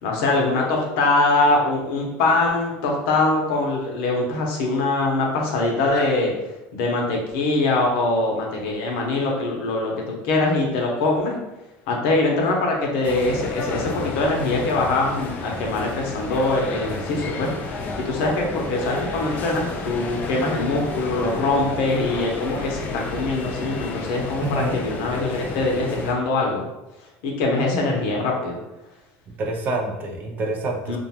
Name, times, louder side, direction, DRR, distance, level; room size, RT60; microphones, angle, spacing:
voice 1, 0.0-6.3 6.7-11.4 11.9-22.8 23.1-26.6 27.2-28.6 30.9-31.0, left 2 dB, 75° left, 0 dB, 0.7 m, -23 dB
sound 1, 13.0-26.1, left 3 dB, 35° left, 0.4 m, -31 dB
voice 2, 24.4-24.8 27.7-27.9 29.4-31.0, right 2 dB, 35° right, 2 dB, 0.4 m, -27 dB
2.4 x 2.2 x 2.8 m, 0.99 s
cardioid pair, 140°, 5 cm